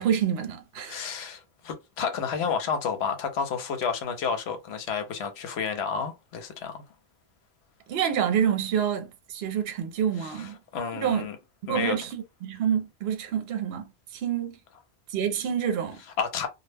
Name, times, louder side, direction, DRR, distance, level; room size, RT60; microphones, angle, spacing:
voice 1, 0.0-1.1 7.9-10.6 10.9-11.3 11.7-14.6 15.1-16.0, right 8 dB, 70° right, 0.8 m, -27 dB
voice 2, 0.8-6.8 10.2-11.4 11.7-12.0 16.2-16.5, left 6 dB, 75° left, 0.8 m, -31 dB
2.2 x 2.1 x 3.2 m
omnidirectional pair, 1.1 m